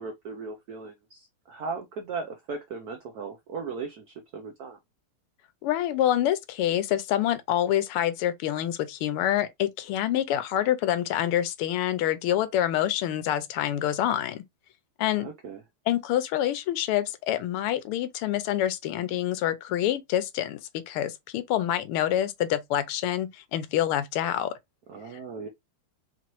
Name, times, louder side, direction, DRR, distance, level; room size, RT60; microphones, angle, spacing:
voice 1, 0.0-4.8 15.2-15.6 24.9-25.5, right 4 dB, 75° right, 0.8 m, -37 dB
voice 2, 5.6-14.4 15.0-15.3 15.9-24.6, left 12 dB, 85° left, 1.5 m, -26 dB
4.4 x 2.9 x 3.0 m
omnidirectional pair, 2.4 m